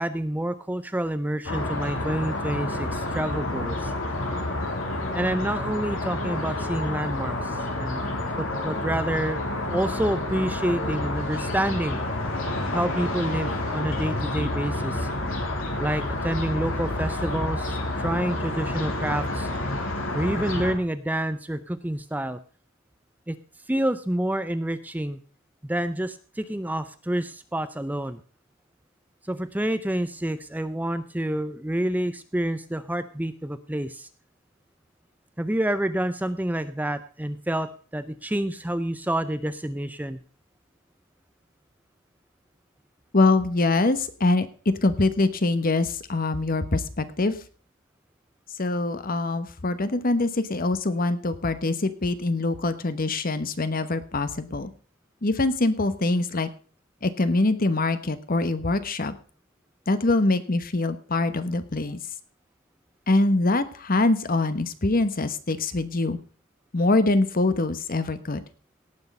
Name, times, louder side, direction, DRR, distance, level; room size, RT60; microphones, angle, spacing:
voice 1, 0.0-3.9 5.1-8.0 8.4-9.4 9.7-12.0 12.7-15.1 15.8-19.5 20.1-22.4 23.3-23.4 23.7-25.2 25.6-28.2 29.3-34.1 35.4-40.2, right 1 dB, 10° right, 12 dB, 0.6 m, -28 dB
sound 1, 1.4-20.7, left 1 dB, 75° left, 3.2 m, -29 dB
voice 2, 43.1-44.5 44.8-47.3 48.6-54.7 55.2-56.5 57.0-59.1 59.9-62.0 63.1-66.2 66.7-68.4, left 2 dB, 45° left, 12 dB, 1.1 m, -24 dB
17.5 x 6.4 x 5.4 m, 0.40 s
head